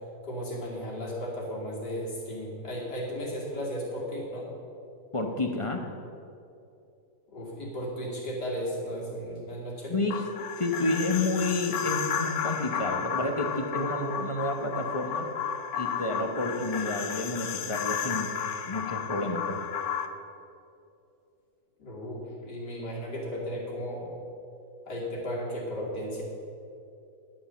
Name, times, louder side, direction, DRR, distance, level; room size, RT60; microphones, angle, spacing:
voice 1, 0.2-4.5 7.3-10.0 21.8-24.1 24.9-26.2, equal, 90° left, -4 dB, 3.2 m, -35 dB
voice 2, 5.1-5.9 9.9-10.2 10.6-15.2 15.8-18.3 18.7-19.6, left 2 dB, 25° left, 4 dB, 0.7 m, -30 dB
sound 1, 10.1-20.1, left 8 dB, 70° left, 1.2 m, -33 dB
11.5 x 7.3 x 7.1 m, 2.6 s
omnidirectional pair, 1.7 m